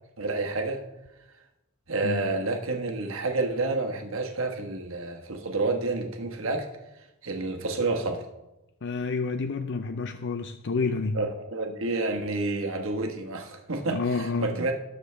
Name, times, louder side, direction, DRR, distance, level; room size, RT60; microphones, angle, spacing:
voice 1, 0.2-0.8 1.9-6.7 7.2-8.2 11.1-14.7, right 3 dB, 65° right, 3 dB, 1.3 m, -29 dB
voice 2, 2.0-2.3 8.8-11.3 13.9-14.7, left 4 dB, 55° left, 8 dB, 0.5 m, -29 dB
19.5 x 6.5 x 3.3 m, 0.98 s
head